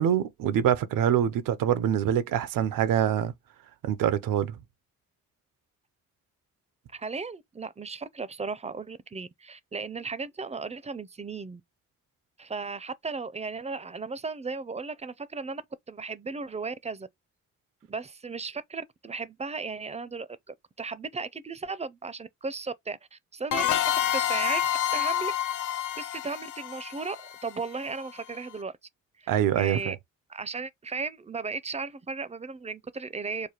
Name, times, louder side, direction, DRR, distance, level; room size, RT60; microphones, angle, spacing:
voice 1, 0.0-3.3 3.8-4.6 29.3-29.9, right 10 dB, 90° right, 0.5 m, -25 dB
voice 2, 6.9-11.6 12.4-15.6 15.9-17.1 17.9-20.3 20.8-25.3 25.7-28.7 29.2-30.0 30.3-33.5, right 4 dB, 20° right, 0.4 m, -36 dB
sound 1, 23.5-28.0, left 11 dB, 70° left, 0.4 m, -28 dB
4.8 x 2.2 x 2.9 m
cardioid pair, 65°, 32 cm